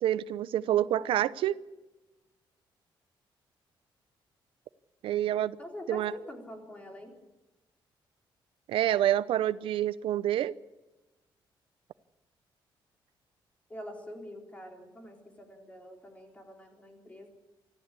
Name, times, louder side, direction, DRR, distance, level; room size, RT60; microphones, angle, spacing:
voice 1, 0.0-1.5 5.0-5.6 5.9-6.1 8.7-10.5, right 12 dB, 90° right, 0.7 m, -27 dB
voice 2, 5.6-7.2 13.7-17.3, left 1 dB, 15° left, 4.0 m, -45 dB
25.0 x 15.0 x 8.4 m
cardioid pair, 165°, 9 cm